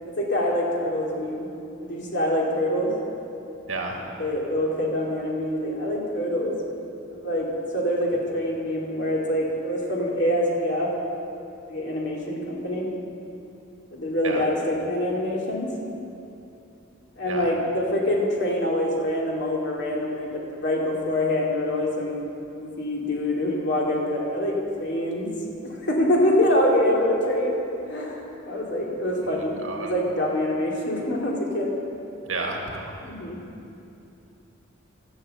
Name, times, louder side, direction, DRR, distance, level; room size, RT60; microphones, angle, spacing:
voice 1, 0.0-1.5 1.8-2.9 4.2-6.5 7.1-10.9 11.7-12.9 13.9-15.7 17.2-22.3 22.6-25.3 25.6-27.6 27.9-31.7 33.0-33.4, left 1 dB, 60° left, -3 dB, 2.5 m, -25 dB
voice 2, 3.7-4.0 14.2-14.4 17.2-17.5 29.6-29.9 32.3-32.8, right 3 dB, 80° right, 1 dB, 1.9 m, -30 dB
12.0 x 7.8 x 7.8 m, 2.7 s
head